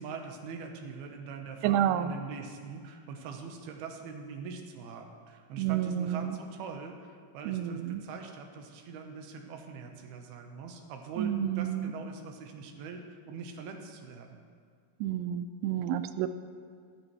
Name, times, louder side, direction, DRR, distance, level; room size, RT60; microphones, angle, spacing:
voice 1, 0.0-14.4, right 5 dB, 70° right, 3 dB, 2.8 m, -43 dB
voice 2, 1.6-2.1 5.6-6.4 7.5-8.0 11.2-11.9 15.0-16.3, right 10 dB, 85° right, 11 dB, 2.9 m, -30 dB
15.5 x 14.5 x 3.3 m, 2.1 s
omnidirectional pair, 5.2 m